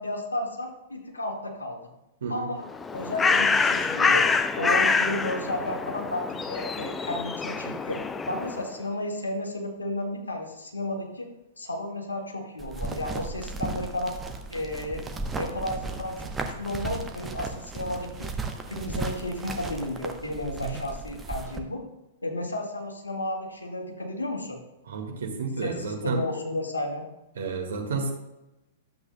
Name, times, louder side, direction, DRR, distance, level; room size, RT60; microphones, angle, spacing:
voice 1, 0.0-1.8 2.3-2.7 2.9-4.3 4.6-8.0 8.3-11.3 11.6-14.1 14.5-15.1 15.4-16.1 16.4-18.3 18.7-21.8 22.2-24.6 25.6-27.1, left 1 dB, 80° left, 1 dB, 1.8 m, -32 dB
Bird, 2.7-8.7, left 4 dB, 15° left, 0.4 m, -26 dB
sound 1, 12.6-21.6, right 3 dB, 15° right, 0.9 m, -35 dB
voice 2, 24.9-26.2 27.4-28.1, right 4 dB, 65° right, 3 dB, 1.7 m, -31 dB
12.0 x 8.0 x 2.2 m, 0.95 s
figure-of-eight pair, 105°, 0 cm